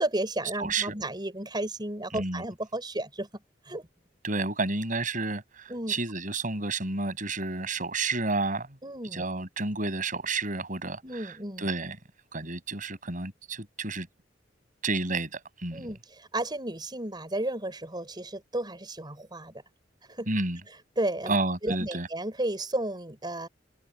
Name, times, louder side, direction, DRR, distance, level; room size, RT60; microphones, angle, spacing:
voice 1, 0.0-3.3 3.7-3.9 5.7-6.0 8.8-9.2 11.0-11.7 15.7-19.6 20.1-20.3 20.7-21.3 21.6-23.5, right 1 dB, 25° right, 6.0 m, -33 dB
voice 2, 0.6-0.9 2.1-2.4 4.2-8.7 9.1-12.0 12.3-14.1 14.8-15.8 20.3-20.6 21.3-22.1, right 3 dB, 45° right, 6.9 m, -30 dB
head